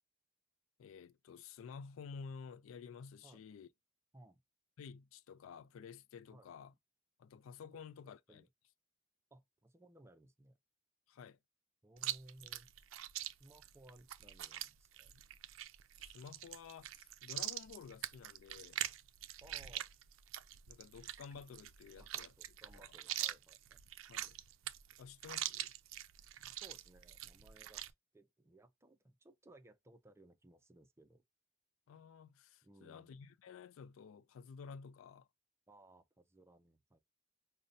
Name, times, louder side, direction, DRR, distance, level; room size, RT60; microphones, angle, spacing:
voice 1, 0.8-3.7 4.8-6.7 7.2-8.4 11.1-11.4 16.0-18.8 20.7-22.3 22.7-22.9 24.1-24.4 25.0-25.7 31.9-35.3, left 6 dB, 80° left, 0.3 m, -52 dB
voice 2, 9.3-10.6 11.8-12.7 13.2-15.2 19.4-19.9 22.0-22.1 22.4-23.8 26.5-31.2 32.6-33.2 35.7-37.0, right 1 dB, 15° right, 0.4 m, -62 dB
Chewing mastication, 12.0-27.9, right 13 dB, 75° right, 0.4 m, -44 dB
5.1 x 2.1 x 2.5 m
head